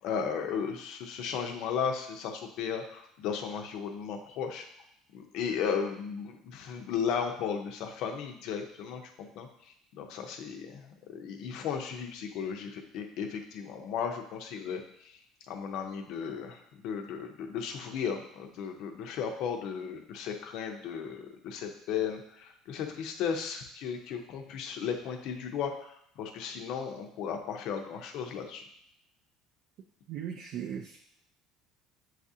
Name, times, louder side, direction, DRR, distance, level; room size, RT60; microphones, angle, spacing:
voice 1, 0.0-4.7 5.1-15.2 15.5-28.6, left 7 dB, 55° left, 4 dB, 0.6 m, -35 dB
voice 2, 30.1-31.0, right 9 dB, 50° right, 2 dB, 0.3 m, -37 dB
7.4 x 2.5 x 2.7 m, 0.72 s
cardioid pair, 160°, 0 cm